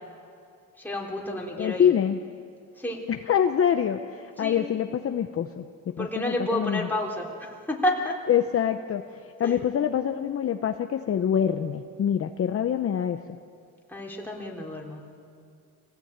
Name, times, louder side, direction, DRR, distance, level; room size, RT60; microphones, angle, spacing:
voice 1, 0.8-1.9 2.8-3.0 4.4-4.6 6.0-8.2 9.4-9.6 13.9-15.2, left 1 dB, 5° left, -2 dB, 3.6 m, -30 dB
voice 2, 1.6-2.2 3.1-6.9 8.3-9.0 9.4-13.2, left 9 dB, 40° left, 6 dB, 0.8 m, -25 dB
26.0 x 17.5 x 8.9 m, 2.3 s
cardioid pair, 125°, 34 cm